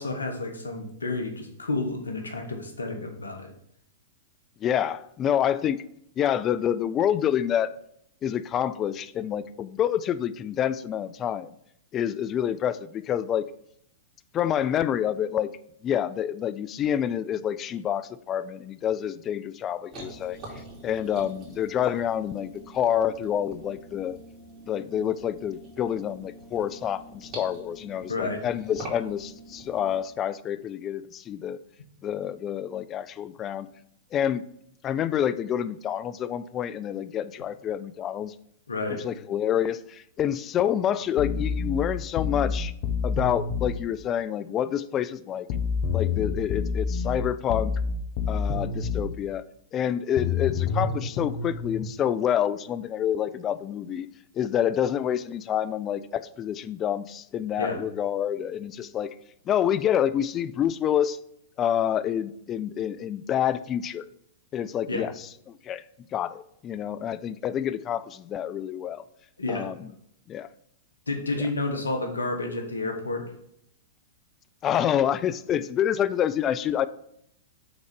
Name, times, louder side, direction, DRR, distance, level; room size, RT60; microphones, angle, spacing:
voice 1, 0.0-3.5 28.1-28.4 38.7-39.0 57.6-57.8 64.9-65.1 69.4-69.7 71.1-73.3, left 2 dB, 85° left, 4 dB, 1.2 m, -30 dB
voice 2, 4.6-5.8 6.2-7.7 8.2-11.5 11.9-13.5 14.3-15.5 15.8-20.4 20.8-24.2 24.7-31.6 32.0-33.7 34.1-34.5 34.8-38.3 38.9-42.7 43.0-45.5 45.9-47.7 48.3-49.4 49.7-54.1 54.3-59.1 59.5-61.2 61.6-64.1 64.5-65.1 65.5-65.8 66.1-69.0 69.5-69.9 70.3-70.5 74.6-76.9, left 10 dB, 30° left, 15 dB, 0.3 m, -27 dB
sound 1, 19.9-30.0, right 1 dB, 35° right, 2.8 m, -45 dB
sound 2, 41.2-43.8 45.5-49.1 50.2-51.8, left 5 dB, 50° left, 0.9 m, -28 dB
5.9 x 3.8 x 5.3 m, 0.72 s
hypercardioid pair, 110°, 0 cm